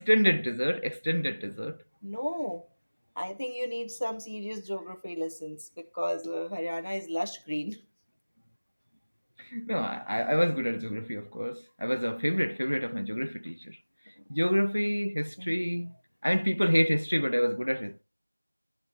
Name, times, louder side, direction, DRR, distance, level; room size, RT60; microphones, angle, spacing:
voice 1, 0.0-1.8 9.4-13.8 14.3-15.9 16.2-18.0, equal, 90° left, 0.3 m, -28 dB
voice 2, 2.0-2.6 3.2-7.8 15.4-15.5, equal, 40° left, 0.6 m, -34 dB
12.5 x 4.4 x 2.8 m
figure-of-eight pair, 180°, 0 cm